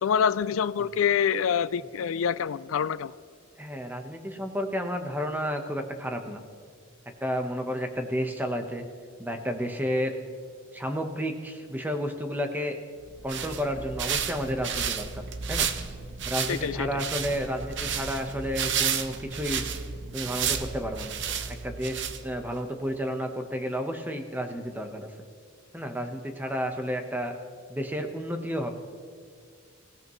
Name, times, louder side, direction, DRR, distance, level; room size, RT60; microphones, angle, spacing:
voice 1, 0.0-3.1 16.5-17.0, left 7 dB, 85° left, 0.4 m, -26 dB
voice 2, 3.6-6.4 7.2-8.9 9.2-10.1 10.7-12.8 13.2-15.2 15.5-15.7 16.2-19.6 20.1-21.2 21.5-25.1 25.7-27.3 27.7-28.7, equal, 10° right, 1.1 m, -31 dB
sound 1, 13.1-22.6, right 7 dB, 60° right, 0.9 m, -32 dB
27.0 x 16.5 x 3.2 m
head